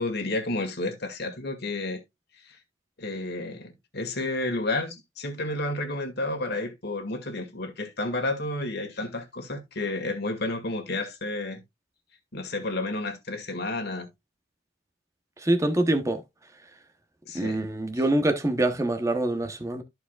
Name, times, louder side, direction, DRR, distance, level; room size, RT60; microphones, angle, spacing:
voice 1, 0.0-2.0 2.5-2.6 3.0-11.6 12.3-14.1 17.3-17.6, left 2 dB, 55° left, 2.0 m, -31 dB
voice 2, 15.4-16.2 17.3-19.8, right 1 dB, 15° right, 0.8 m, -25 dB
14.0 x 4.8 x 2.3 m
head